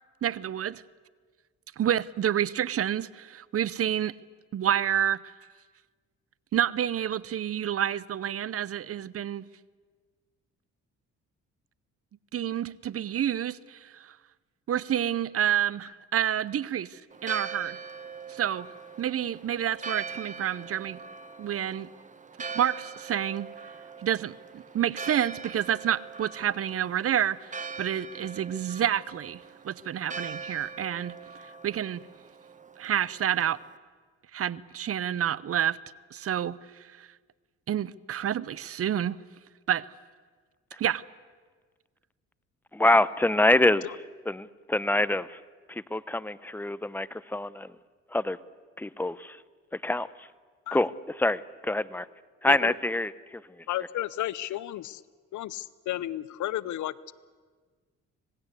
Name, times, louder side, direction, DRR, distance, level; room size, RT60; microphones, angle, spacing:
voice 1, 0.2-0.8 1.8-4.1 4.5-5.2 6.5-9.4 12.3-14.1 14.7-17.8 18.3-18.7 19.0-21.0 21.4-21.9 22.5-23.5 24.0-31.2 31.6-32.0 32.8-33.6 34.3-35.8 36.1-36.6 37.0-37.1 37.7-39.2 39.7-39.9 40.8-41.0, right 10 dB, 50° right, 21 dB, 0.7 m, -29 dB
Church bell, 17.1-33.8, right 5 dB, 25° right, 1.4 m, -42 dB
voice 2, 42.7-43.8 44.3-45.4 45.7-47.7 48.1-48.4 48.8-49.4 49.7-50.3 50.7-50.9 51.2-52.1 52.4-53.4, left 2 dB, 5° left, 17 dB, 0.7 m, -25 dB
voice 3, 53.7-55.0 55.3-57.1, left 14 dB, 75° left, 19 dB, 0.8 m, -33 dB
26.0 x 18.5 x 8.2 m, 1.5 s
cardioid pair, 90°, 30 cm